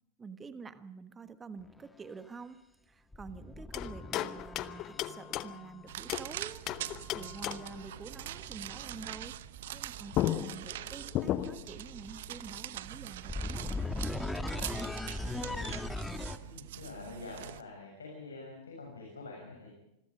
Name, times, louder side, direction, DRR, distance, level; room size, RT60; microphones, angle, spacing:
voice 1, 0.2-2.6 2.9-6.7 7.1-9.4 9.7-13.8 14.6-15.3, right 4 dB, 15° right, 13 dB, 1.3 m, -48 dB
sound 1, 1.6-1.9 3.1-5.2 7.1-16.4, left 2 dB, 5° left, 1.5 m, -40 dB
sound 2, 3.7-6.3 6.7-7.8 9.8-9.9 10.1-11.8, left 13 dB, 35° left, 0.9 m, -35 dB
sound 3, 5.9-17.6, right 13 dB, 55° right, 0.9 m, -43 dB
voice 2, 15.2-15.7 16.4-19.7, left 3 dB, 70° left, -1 dB, 7.2 m, -46 dB
27.0 x 21.5 x 5.2 m, 0.88 s
figure-of-eight pair, 90°, 0 cm